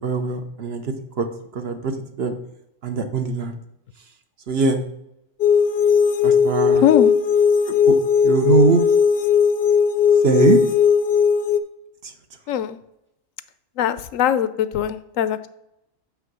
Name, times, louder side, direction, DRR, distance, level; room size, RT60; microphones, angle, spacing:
voice 1, 0.0-1.3 1.5-1.9 2.2-2.3 2.8-3.6 4.5-4.8 6.2-6.9 7.9-8.0 8.2-8.8 10.2-10.6 12.0-12.1, right 4 dB, 55° right, 6 dB, 1.0 m, -21 dB
sound 1, 5.4-11.6, left 6 dB, 60° left, 0.7 m, -17 dB
voice 2, 6.8-7.1 12.5-12.8 13.8-15.5, left 10 dB, 80° left, 13 dB, 1.0 m, -21 dB
7.0 x 5.7 x 6.1 m, 0.85 s
omnidirectional pair, 1.4 m